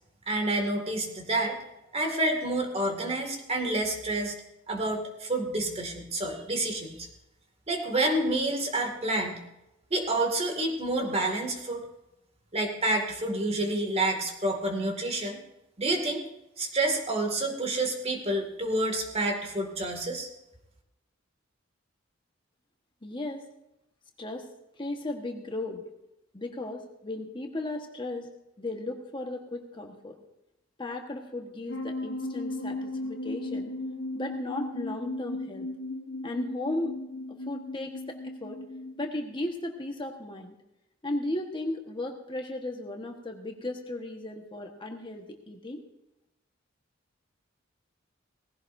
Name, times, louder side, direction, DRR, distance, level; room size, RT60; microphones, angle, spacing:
voice 1, 0.3-1.6 1.9-4.4 4.7-7.1 7.7-9.4 9.9-11.8 12.5-15.4 15.8-16.3 16.6-20.3, right 2 dB, 30° right, 3 dB, 2.2 m, -28 dB
voice 2, 23.0-23.4 24.2-24.5 24.8-25.8 26.3-28.3 28.6-30.2 30.8-33.7 34.1-35.7 36.2-36.9 37.3-38.6 39.0-40.5 41.0-45.8, left 2 dB, 25° left, 2 dB, 1.4 m, -35 dB
sound 1, 31.7-39.1, left 2 dB, 80° left, 1.0 m, -36 dB
18.5 x 16.0 x 2.7 m, 0.89 s
head